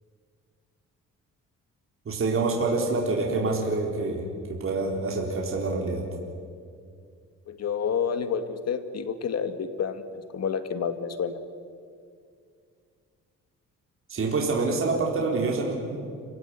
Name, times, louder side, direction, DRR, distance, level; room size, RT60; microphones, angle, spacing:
voice 1, 2.1-4.2 4.5-6.0 14.1-16.0, right 3 dB, 45° right, 0 dB, 4.1 m, -26 dB
voice 2, 7.5-10.0 10.3-11.4, left 7 dB, 60° left, 10 dB, 2.2 m, -29 dB
28.5 x 17.0 x 9.9 m, 2.2 s
cardioid pair, 90°, 30 cm